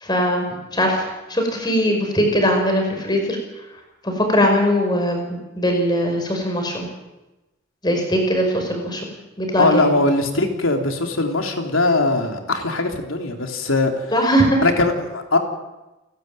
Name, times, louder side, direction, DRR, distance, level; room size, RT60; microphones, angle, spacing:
voice 1, 0.0-3.4 4.0-6.9 7.8-9.0 9.4-9.9 14.1-14.6, equal, 20° left, 3 dB, 5.7 m, -20 dB
voice 2, 9.6-13.9 14.6-15.4, left 2 dB, 85° left, 4 dB, 3.4 m, -20 dB
29.5 x 12.0 x 9.2 m, 1.0 s
head